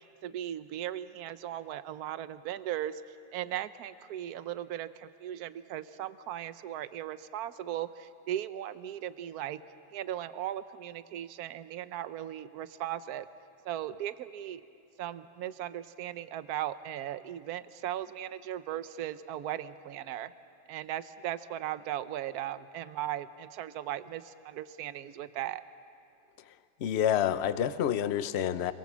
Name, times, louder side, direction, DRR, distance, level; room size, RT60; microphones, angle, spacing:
voice 1, 0.0-3.0 3.3-9.6 9.9-13.3 13.6-14.6 15.0-20.3 20.7-25.6, right 12 dB, 60° right, 13 dB, 1.1 m, -37 dB
voice 2, 26.8-28.7, left 10 dB, 75° left, 12 dB, 0.6 m, -28 dB
29.5 x 22.5 x 7.4 m, 2.6 s
omnidirectional pair, 2.2 m